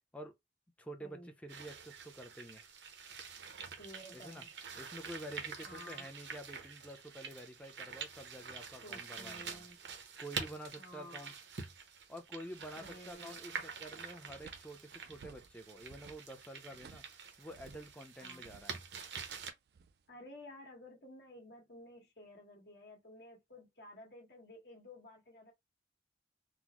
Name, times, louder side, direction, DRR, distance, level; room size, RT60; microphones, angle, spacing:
voice 1, 0.8-2.6 4.1-4.4 4.8-9.7 10.2-11.3 12.1-17.0 17.4-18.8, right 1 dB, 5° left, 0.5 m, -49 dB
sound 1, 1.5-19.5, right 6 dB, 75° right, 0.7 m, -47 dB
voice 2, 3.8-4.5 5.6-6.1 8.8-9.8 10.8-11.3 12.8-13.6 18.2-18.4 20.1-25.5, left 1 dB, 65° left, 1.4 m, -53 dB
sound 2, 12.8-13.5 13.8-18.0 18.4-20.1, right 5 dB, 60° right, 0.3 m, -59 dB
3.9 x 2.0 x 2.9 m
head